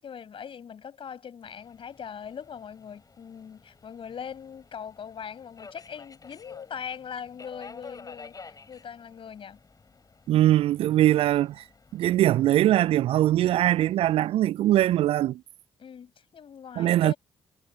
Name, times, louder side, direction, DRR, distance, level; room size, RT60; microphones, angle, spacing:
voice 1, 0.0-9.6 15.8-17.2, left 7 dB, 50° left, 7.2 m, -41 dB
Subway metro underground, 1.4-14.3, left 4 dB, 35° left, 3.9 m, -52 dB
voice 2, 10.3-11.6 11.9-15.4 16.8-17.1, right 13 dB, 55° right, 0.4 m, -22 dB
hypercardioid pair, 45°, 11 cm